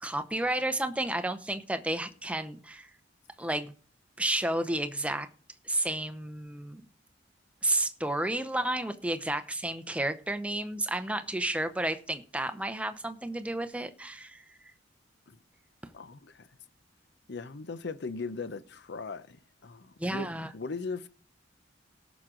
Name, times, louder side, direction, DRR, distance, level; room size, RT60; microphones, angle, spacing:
voice 1, 0.0-2.9 3.4-3.7 4.2-5.3 5.6-6.8 7.6-14.4 20.0-20.5, right 1 dB, 5° right, 0.7 m, -31 dB
voice 2, 15.9-16.5 17.3-21.1, left 4 dB, 60° left, 0.8 m, -39 dB
17.5 x 6.2 x 3.8 m
head